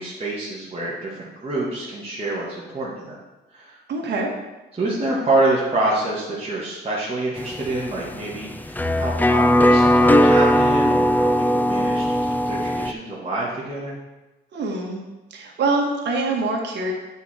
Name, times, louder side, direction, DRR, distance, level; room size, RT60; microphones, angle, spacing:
voice 1, 0.0-3.2 3.5-3.8 4.7-14.0, right 2 dB, 30° right, -7 dB, 1.8 m, -26 dB
voice 2, 3.9-4.3 14.5-15.0 15.3-16.9, right 3 dB, 60° right, 0 dB, 1.8 m, -24 dB
sound 1, 7.4-12.9, equal, 10° left, 0.4 m, -18 dB
9.0 x 4.7 x 4.4 m, 1.1 s
cardioid pair, 90°, 20 cm